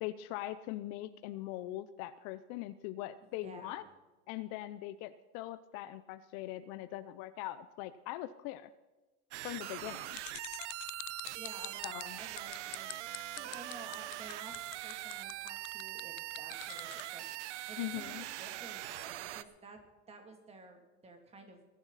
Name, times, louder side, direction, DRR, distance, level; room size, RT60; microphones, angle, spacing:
voice 1, 0.0-3.8 4.3-8.7 9.4-10.2 11.8-12.2 17.8-18.2, left 15 dB, 45° left, 13 dB, 0.7 m, -41 dB
voice 2, 3.4-3.9 11.4-19.8 20.1-21.7, right 3 dB, 15° right, 4 dB, 2.7 m, -52 dB
sound 1, 9.3-19.4, right 16 dB, 70° right, 0.9 m, -42 dB
sound 2, 10.1-17.1, left 19 dB, 80° left, 0.6 m, -45 dB
21.5 x 11.5 x 4.1 m, 1.2 s
supercardioid pair, 140°, 36 cm